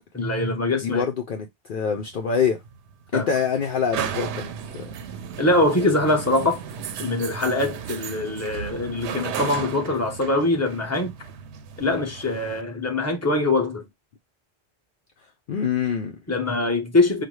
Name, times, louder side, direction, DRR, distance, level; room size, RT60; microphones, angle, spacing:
voice 1, 0.1-1.0 3.1-3.3 5.4-6.6 7.0-11.1 11.8-13.8 16.3-17.2, left 2 dB, 15° left, 0.9 m, -23 dB
voice 2, 0.7-2.6 3.1-4.9 15.5-16.2, left 7 dB, 60° left, 0.7 m, -25 dB
sound 1, 2.0-12.6, right 7 dB, 90° right, 0.9 m, -35 dB
5.8 x 2.1 x 3.1 m
omnidirectional pair, 1.1 m